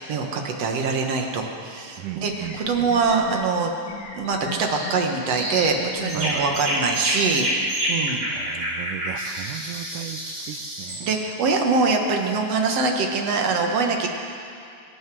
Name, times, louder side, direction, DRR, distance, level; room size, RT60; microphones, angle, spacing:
voice 1, 0.0-3.7 4.1-8.2 11.0-14.1, right 4 dB, 60° right, 2 dB, 2.1 m, -24 dB
sound 1, 1.8-1.9 2.3-3.4 3.9-4.9 5.4-6.5, left 4 dB, 65° left, 3.0 m, -37 dB
voice 2, 2.0-2.9 6.1-6.6 8.3-11.1, right 11 dB, 85° right, 10 dB, 2.3 m, -36 dB
sound 2, 4.6-4.9 5.3-5.7 6.1-11.0, right 1 dB, 25° right, 4.0 m, -28 dB
25.0 x 9.4 x 6.2 m, 2.5 s
omnidirectional pair, 3.6 m